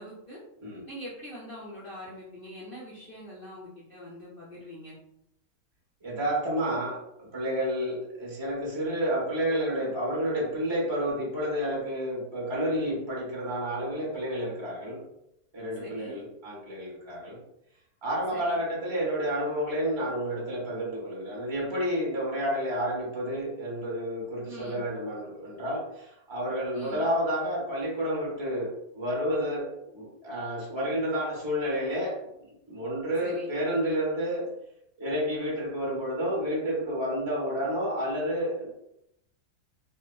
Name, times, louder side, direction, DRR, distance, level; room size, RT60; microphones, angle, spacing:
voice 1, 0.0-0.4 0.9-5.0 15.7-16.2 18.3-18.6 24.5-24.8 26.7-27.1 33.2-33.5, equal, 65° left, -8 dB, 0.5 m, -43 dB
voice 2, 6.0-15.0 15.5-17.4 18.0-32.2 32.7-34.5 35.0-38.7, equal, 30° right, -4 dB, 0.5 m, -30 dB
2.8 x 2.1 x 2.3 m, 0.81 s
omnidirectional pair, 1.8 m